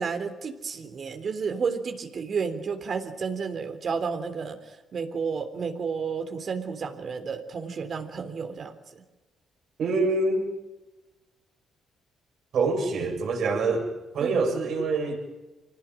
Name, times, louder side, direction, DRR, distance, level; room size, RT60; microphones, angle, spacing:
voice 1, 0.0-9.0 14.2-14.5, right 5 dB, 50° right, 7 dB, 3.5 m, -31 dB
voice 2, 9.8-10.5 12.5-15.2, right 3 dB, 65° right, 1 dB, 7.2 m, -25 dB
25.5 x 18.5 x 9.1 m, 1.1 s
cardioid pair, 90°, 0 cm